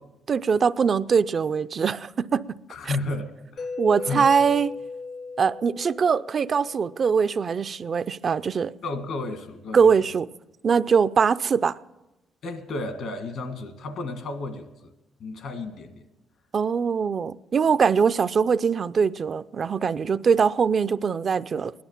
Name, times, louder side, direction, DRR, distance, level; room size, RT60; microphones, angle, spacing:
voice 1, 0.3-2.6 2.8-2.9 3.8-4.7 5.4-8.7 9.7-10.3 10.6-11.8 16.5-21.7, right 6 dB, 45° right, 0.4 m, -22 dB
voice 2, 2.7-3.8 4.0-4.3 8.8-9.9 12.4-14.9 15.2-16.0, left 2 dB, 70° left, 1.8 m, -33 dB
Mallet percussion, 3.6-7.3, left 4 dB, 50° left, 0.6 m, -37 dB
17.5 x 11.0 x 7.2 m
cardioid pair, 90°, 0 cm